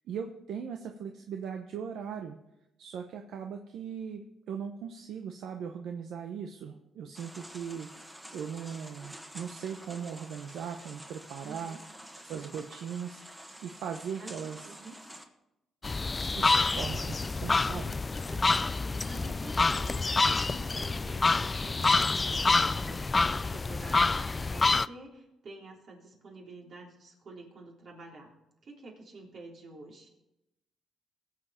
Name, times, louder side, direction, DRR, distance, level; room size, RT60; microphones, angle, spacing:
voice 1, 0.1-2.4 2.8-7.9 8.3-11.8 12.2-14.6 16.3-17.9, right 7 dB, 80° right, 4 dB, 0.9 m, -39 dB
sound 1, 7.1-15.2, right 1 dB, 10° right, 1.5 m, -48 dB
voice 2, 11.4-11.8 14.2-15.0 16.7-17.2 18.2-28.4 28.6-30.1, right 2 dB, 55° right, -1 dB, 3.5 m, -49 dB
sound 2, 15.8-24.9, left 3 dB, 25° left, 0.3 m, -27 dB
19.5 x 7.7 x 4.3 m, 0.90 s
cardioid pair, 90°, 0 cm